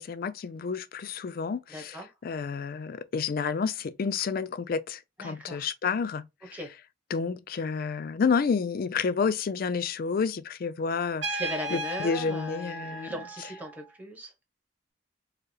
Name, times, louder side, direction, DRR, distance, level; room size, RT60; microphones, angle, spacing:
voice 1, 0.0-2.0 2.2-6.6 7.1-11.4 11.7-13.1, left 5 dB, 55° left, 0.4 m, -30 dB
voice 2, 1.7-2.1 5.2-5.7 6.5-6.7 11.3-14.3, equal, 10° right, 1.0 m, -38 dB
Trumpet, 11.2-13.9, right 1 dB, 75° right, 1.3 m, -36 dB
4.5 x 2.0 x 3.1 m
head